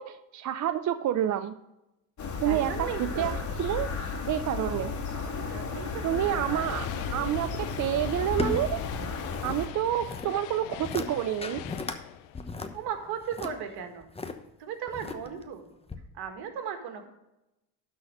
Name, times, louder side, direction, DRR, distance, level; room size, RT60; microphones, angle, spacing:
voice 1, 0.0-1.5 2.4-2.9 3.2-3.3 3.6-3.9 4.3-4.9 6.0-7.5 7.8-8.8 9.4-11.6, right 11 dB, 45° right, 11 dB, 0.5 m, -28 dB
sound 1, 2.2-9.7, left 4 dB, 45° left, 2.2 m, -34 dB
voice 2, 2.4-3.5 5.3-7.3 12.7-14.1 14.6-15.7 16.1-17.1, right 7 dB, 70° right, 6 dB, 1.7 m, -37 dB
sound 2, 6.0-13.4, left 16 dB, 85° left, 0.5 m, -43 dB
sound 3, 7.7-9.6 9.8-10.3 10.7-11.1 11.4-12.0 12.3-14.3 14.9-15.5 15.9-16.0, left 3 dB, 15° left, 0.9 m, -36 dB
12.0 x 4.3 x 6.3 m, 0.93 s
supercardioid pair, 85°, 40 cm